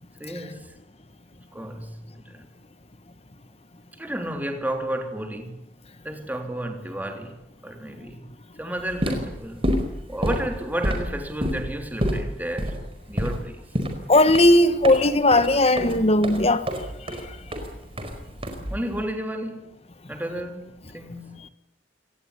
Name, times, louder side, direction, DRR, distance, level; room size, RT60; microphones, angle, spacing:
voice 1, 0.2-0.7 1.5-2.5 4.0-5.6 6.0-8.3 8.6-9.7 10.1-13.6 18.7-19.7 20.1-21.3, right 1 dB, 10° right, 3.5 m, -32 dB
sound 1, 8.8-19.0, equal, 30° right, 4.8 m, -29 dB
voice 2, 14.1-16.6, left 1 dB, 35° left, 1.6 m, -17 dB
26.0 x 18.5 x 9.9 m
head